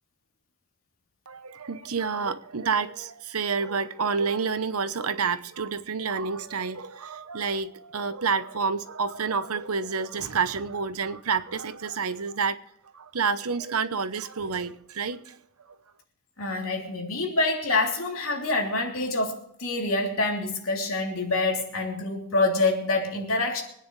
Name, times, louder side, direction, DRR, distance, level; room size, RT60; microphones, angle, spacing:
voice 1, 1.3-12.6 12.9-15.4, right 5 dB, 80° right, 0.9 m, -29 dB
voice 2, 16.4-23.6, left 2 dB, 65° left, 3.3 m, -26 dB
25.0 x 9.6 x 3.3 m
head